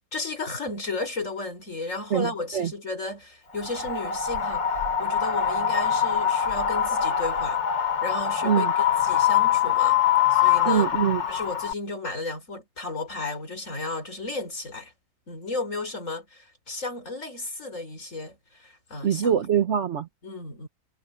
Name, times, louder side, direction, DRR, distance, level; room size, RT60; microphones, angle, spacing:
voice 1, 0.1-10.0 10.3-10.9 11.3-14.9 15.3-19.4 20.2-20.7, left 3 dB, 45° left, 4.5 m, -34 dB
Wind, 3.6-11.7, left 9 dB, 80° left, 4.0 m, -23 dB
voice 2, 10.7-11.2 19.0-20.1, right 8 dB, 50° right, 1.0 m, -23 dB
omnidirectional pair, 1.9 m